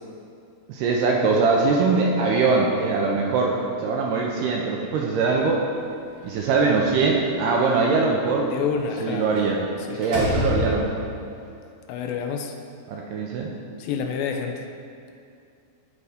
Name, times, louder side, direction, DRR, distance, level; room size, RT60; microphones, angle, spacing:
voice 1, 0.7-5.6 6.2-8.5 9.0-9.7 9.9-10.9 12.9-13.5, right 4 dB, 80° right, -1 dB, 2.0 m, -22 dB
Slam, 6.2-7.2 9.3-9.6 10.0-11.2, left 2 dB, 45° right, 1.5 m, -28 dB
voice 2, 8.5-9.3 9.9-10.1 11.9-12.6 13.8-14.7, left 6 dB, 85° left, 4 dB, 2.4 m, -28 dB
12.0 x 4.1 x 3.5 m, 2.5 s
omnidirectional pair, 4.2 m